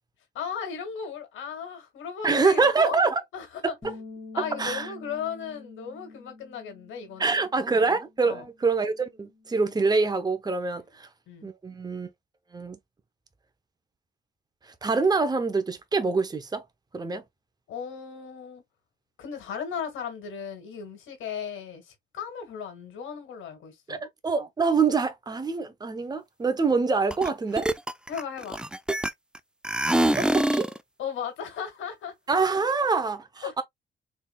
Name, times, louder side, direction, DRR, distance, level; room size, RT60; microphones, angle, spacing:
voice 1, 0.3-3.0 3.3-3.7 4.3-7.4 8.2-8.4 11.3-11.5 17.7-18.6 19.2-24.0 28.1-28.6 31.0-32.1 33.4-33.6, left 7 dB, 80° left, 2.0 m, -36 dB
voice 2, 2.2-3.2 3.6-3.7 4.4-4.9 7.2-11.1 11.4-12.1 12.5-12.8 14.8-16.6 16.9-17.2 23.9-24.0 24.2-27.7 30.2-30.7 32.3-33.6, right 4 dB, 20° right, 0.9 m, -25 dB
Bass guitar, 3.8-10.1, left 3 dB, 25° left, 2.0 m, -47 dB
sound 1, 27.1-27.3 27.6-29.4 29.6-30.8, right 1 dB, 5° right, 0.4 m, -24 dB
4.1 x 3.5 x 2.3 m
cardioid pair, 90°, 20 cm